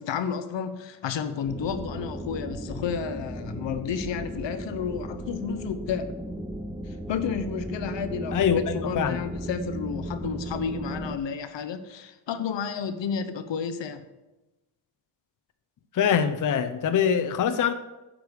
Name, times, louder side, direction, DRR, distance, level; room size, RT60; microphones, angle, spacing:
voice 1, 0.0-6.1 6.9-14.0, left 7 dB, 80° left, 10 dB, 0.9 m, -31 dB
sound 1, 1.4-11.2, right 1 dB, ahead, 0.5 m, -36 dB
voice 2, 8.3-9.2 15.9-17.7, left 7 dB, 45° left, 8 dB, 0.6 m, -24 dB
9.7 x 5.1 x 6.4 m, 1.1 s
wide cardioid pair, 115°, 44 cm